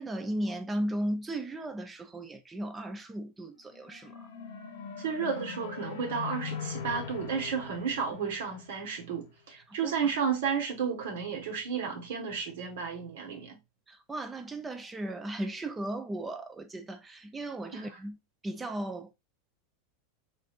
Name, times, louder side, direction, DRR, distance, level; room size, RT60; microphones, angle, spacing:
voice 1, 0.0-4.3 9.7-9.9 13.9-18.2 18.4-19.1, right 1 dB, 10° right, 0.5 m, -36 dB
sound 1, 3.7-9.2, left 6 dB, 75° left, 0.8 m, -41 dB
voice 2, 5.0-13.6 17.7-17.9, right 6 dB, 80° right, 1.3 m, -32 dB
3.5 x 2.6 x 2.4 m
supercardioid pair, 140°, 0 cm